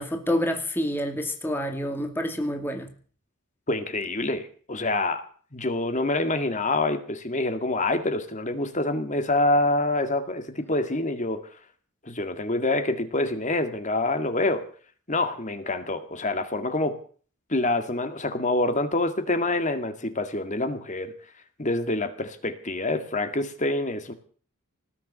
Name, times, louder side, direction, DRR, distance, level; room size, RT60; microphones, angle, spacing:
voice 1, 0.0-2.9, equal, 10° left, 4 dB, 2.2 m, -28 dB
voice 2, 3.7-5.2 5.5-11.4 12.0-14.7 15.1-17.0 17.5-21.1 21.6-24.1, left 2 dB, 35° left, 8 dB, 1.9 m, -26 dB
19.5 x 7.1 x 9.8 m, 0.43 s
head